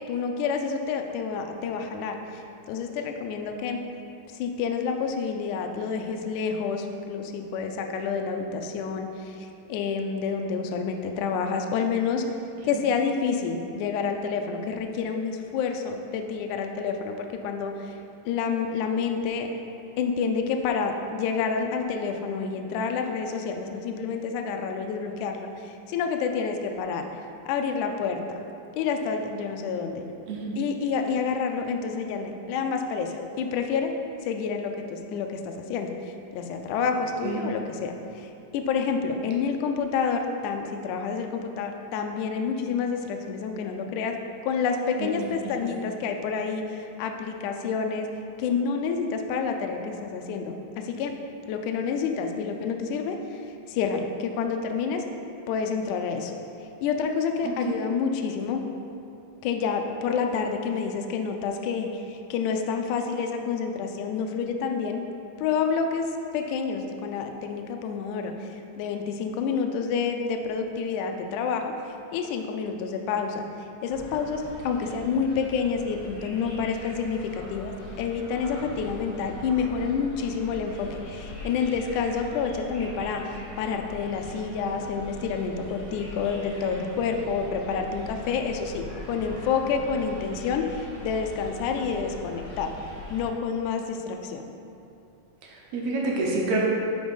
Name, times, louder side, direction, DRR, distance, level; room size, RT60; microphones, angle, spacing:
voice 1, 0.1-3.8 4.3-12.2 12.6-17.9 18.2-19.6 20.0-27.1 27.4-28.2 28.7-30.0 30.6-33.9 34.2-44.2 44.4-48.1 48.4-51.1 51.5-55.0 55.5-56.3 56.8-58.6 59.4-65.0 65.4-66.1 66.3-73.4 73.8-92.7 93.1-94.5, left 5 dB, 85° left, 4 dB, 1.7 m, -28 dB
voice 2, 57.4-57.7 74.9-75.0 95.4-96.7, right 3 dB, 75° right, -3 dB, 1.7 m, -28 dB
sound 1, 73.9-93.2, left 1 dB, 50° left, 1.9 m, -41 dB
5.2 x 5.0 x 5.3 m, 2.7 s
omnidirectional pair, 4.1 m